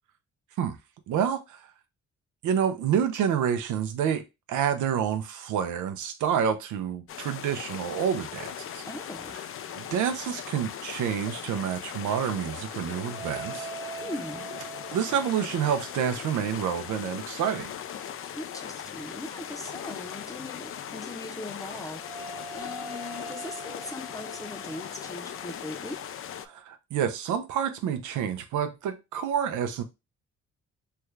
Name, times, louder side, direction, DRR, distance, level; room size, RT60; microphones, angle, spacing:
voice 1, 1.1-1.7 2.4-4.2 4.5-8.8 9.7-13.7 14.9-17.7 26.4-29.8, right 8 dB, 80° right, 0.6 m, -28 dB
sound 1, 7.1-26.5, left 9 dB, 45° left, 0.4 m, -39 dB
voice 2, 8.9-9.3 14.0-14.5 18.3-26.0, left 1 dB, 10° left, 0.7 m, -40 dB
sound 2, 13.0-16.4 21.8-26.5, right 4 dB, 20° right, 0.5 m, -43 dB
3.4 x 2.3 x 3.1 m
cardioid pair, 90°, 30 cm